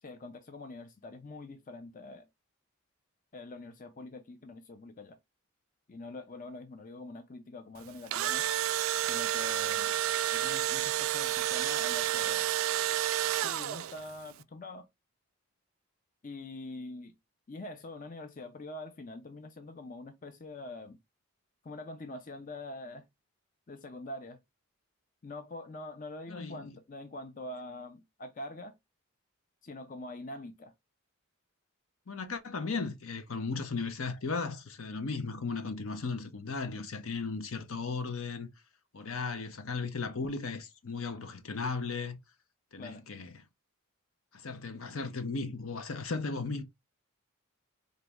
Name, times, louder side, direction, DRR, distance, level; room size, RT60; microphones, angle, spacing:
voice 1, 0.0-2.3 3.3-5.2 5.9-8.4 9.0-9.9 10.3-12.5 13.3-14.9 16.2-17.1 17.5-21.0 21.6-23.1 23.7-24.4 25.2-28.8 29.6-30.7 42.8-43.0, left 2 dB, 35° left, 0.4 m, -44 dB
Engine / Drill, 7.9-14.1, right 12 dB, 65° right, 0.3 m, -30 dB
voice 2, 26.3-26.7 32.1-38.5 38.9-42.2 42.7-43.3 44.3-46.6, left 4 dB, 70° left, 0.7 m, -36 dB
4.0 x 3.1 x 3.4 m
head